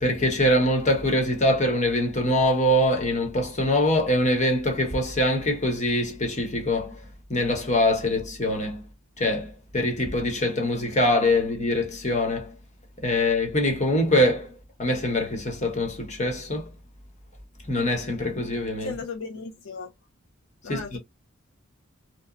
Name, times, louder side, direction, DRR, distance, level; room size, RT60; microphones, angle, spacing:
voice 1, 0.0-7.0 7.3-8.8 9.2-12.5 13.0-14.5 14.8-16.7 17.7-18.9 20.7-21.0, left 1 dB, 35° left, 1.0 m, -23 dB
voice 2, 18.8-19.9 20.6-21.0, left 4 dB, 75° left, 0.5 m, -35 dB
2.9 x 2.1 x 2.4 m
head